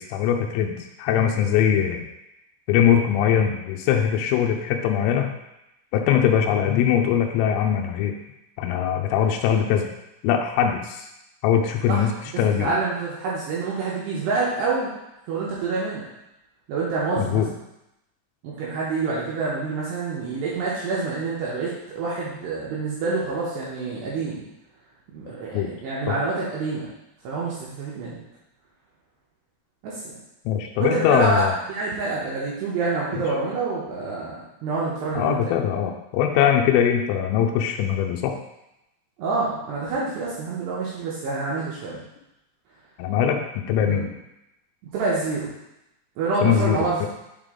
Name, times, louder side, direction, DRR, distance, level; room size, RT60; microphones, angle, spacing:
voice 1, 0.1-2.0 2.7-5.3 5.9-8.1 8.6-9.9 10.2-11.0 11.4-12.7 17.2-17.5 25.5-25.7 26.1-26.2 30.5-31.5 33.2-33.3 35.2-38.4 41.3-41.4 43.0-44.1 46.4-47.1, left 9 dB, 85° left, 3 dB, 3.1 m, -21 dB
voice 2, 11.9-14.9 15.3-16.0 16.7-17.4 18.4-24.4 25.1-26.9 27.2-28.2 29.8-30.0 30.8-31.4 31.7-34.4 34.6-35.4 39.2-42.0 43.8-44.0 44.9-45.5 46.2-47.1, right 3 dB, 80° right, -7 dB, 2.5 m, -27 dB
8.0 x 3.4 x 3.7 m, 0.89 s
omnidirectional pair, 6.0 m